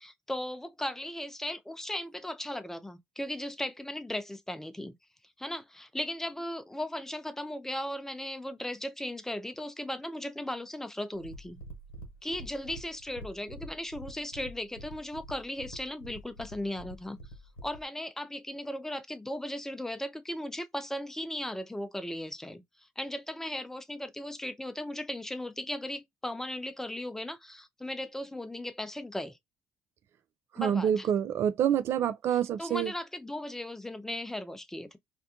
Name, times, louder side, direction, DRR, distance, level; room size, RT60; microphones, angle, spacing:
voice 1, 0.0-4.9 5.4-11.6 12.2-17.2 17.6-22.6 23.0-29.4 30.6-31.1 32.6-35.0, left 1 dB, 10° left, 0.5 m, -37 dB
sound 1, 11.2-17.8, equal, 90° left, 0.7 m, -47 dB
voice 2, 30.5-32.9, right 9 dB, 60° right, 0.4 m, -27 dB
2.5 x 2.1 x 2.8 m
hypercardioid pair, 65°, 5 cm